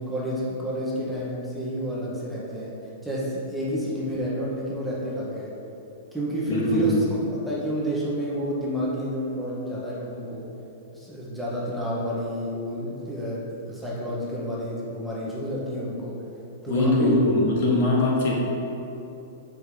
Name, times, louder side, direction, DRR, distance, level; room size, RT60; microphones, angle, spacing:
voice 1, 0.0-5.6 6.1-10.5 10.9-16.3 16.6-17.2, equal, 5° right, -7 dB, 0.9 m, -30 dB
voice 2, 6.5-7.0 16.7-18.4, left 2 dB, 60° left, -3 dB, 1.4 m, -22 dB
6.9 x 4.8 x 3.4 m, 2.9 s
supercardioid pair, 155°, 0 cm